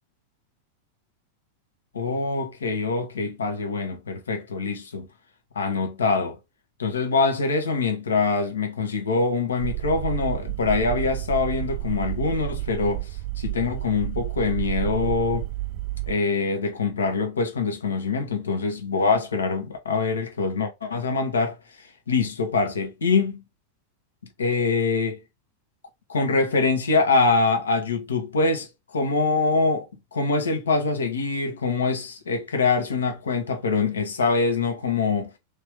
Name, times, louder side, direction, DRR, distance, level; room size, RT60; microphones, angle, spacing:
voice 1, 1.9-5.1 5.5-6.4 6.8-15.5 16.1-23.4 24.4-25.2 26.1-35.3, left 4 dB, 70° left, 0.9 m, -24 dB
sound 1, 9.6-16.1, right 19 dB, 40° right, 0.3 m, -30 dB
3.3 x 2.9 x 3.3 m
figure-of-eight pair, 90°, 0 cm